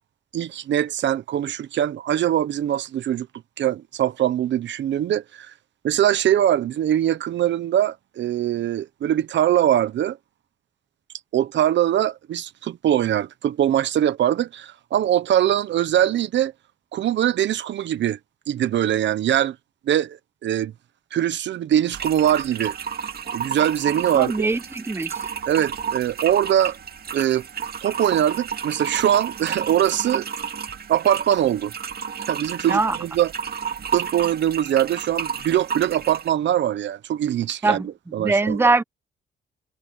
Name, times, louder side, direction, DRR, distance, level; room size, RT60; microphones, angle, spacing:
voice 1, 0.3-3.3 3.6-5.5 5.8-10.2 11.3-16.5 16.9-18.2 18.5-19.6 19.9-20.7 21.1-22.8 23.3-24.5 25.5-26.8 27.1-27.4 27.8-30.3 30.9-31.7 32.3-33.3 33.9-38.6, right 11 dB, 65° right, 1.1 m, -22 dB
sound 1, 21.9-36.3, right 7 dB, 50° right, 2.1 m, -31 dB
voice 2, 24.1-25.1 32.7-33.0 37.6-37.9 38.2-38.8, right 3 dB, 10° right, 0.8 m, -21 dB
cardioid pair, 90°, 20 cm